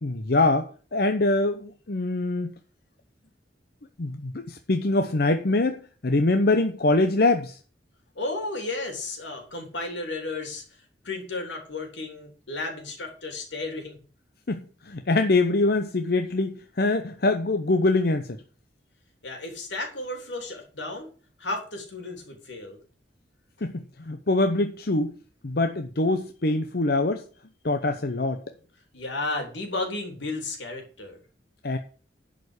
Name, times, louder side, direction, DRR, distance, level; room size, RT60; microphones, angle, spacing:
voice 1, 0.0-2.5 4.0-7.6 14.5-18.4 23.6-25.1 25.4-27.2 27.6-28.4 31.6-31.8, left 2 dB, 60° left, 7 dB, 0.8 m, -24 dB
voice 2, 8.2-10.7 11.0-14.0 19.2-21.1 21.4-22.8 28.9-31.2, left 2 dB, 85° left, 3 dB, 3.4 m, -33 dB
11.0 x 5.2 x 8.0 m, 0.40 s
head